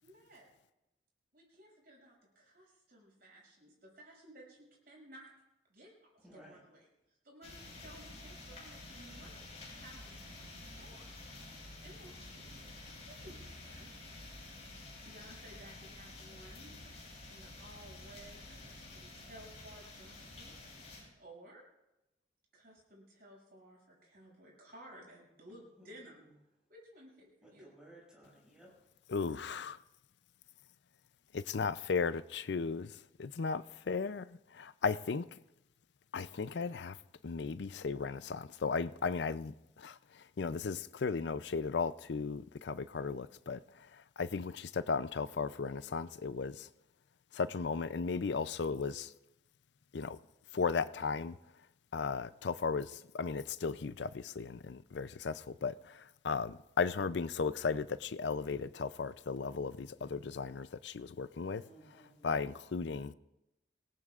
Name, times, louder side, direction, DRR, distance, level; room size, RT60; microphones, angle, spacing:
voice 1, 0.0-0.5 1.3-5.3 5.7-6.9 7.2-11.1 11.8-12.6 13.0-13.9 15.0-16.7 17.2-20.5 21.0-21.6 22.5-26.2 26.7-27.7, right 1 dB, 55° right, 6.8 m, -56 dB
voice 2, 6.2-6.6 27.6-28.7 61.5-62.3, right 1 dB, 5° right, 6.2 m, -57 dB
sound 1, 7.4-21.0, left 2 dB, 35° left, 7.1 m, -50 dB
voice 3, 29.1-29.8 31.3-32.9 33.2-35.2 36.1-37.0 37.2-40.0 40.4-43.6 44.2-46.7 47.3-49.1 49.9-50.2 50.5-51.4 51.9-61.6 62.2-63.1, left 5 dB, 75° left, 0.5 m, -36 dB
26.5 x 18.0 x 2.5 m
head